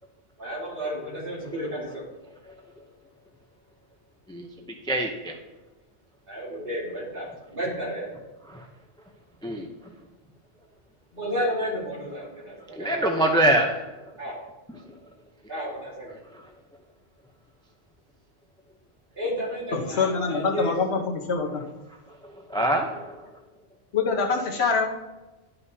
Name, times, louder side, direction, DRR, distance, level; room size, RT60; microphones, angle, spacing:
voice 1, 0.4-2.0 6.3-8.2 11.1-13.1 14.2-14.3 15.5-16.1 19.1-20.7 24.4-24.5, equal, 55° right, -7 dB, 3.4 m, -32 dB
voice 2, 4.9-5.3 8.5-8.6 9.4-9.7 12.8-13.7 22.5-23.1, right 1 dB, 5° left, 2 dB, 0.5 m, -23 dB
voice 3, 19.7-21.6 23.9-24.9, left 4 dB, 75° left, 3 dB, 1.2 m, -25 dB
11.5 x 5.6 x 2.8 m, 1.1 s
omnidirectional pair, 1.1 m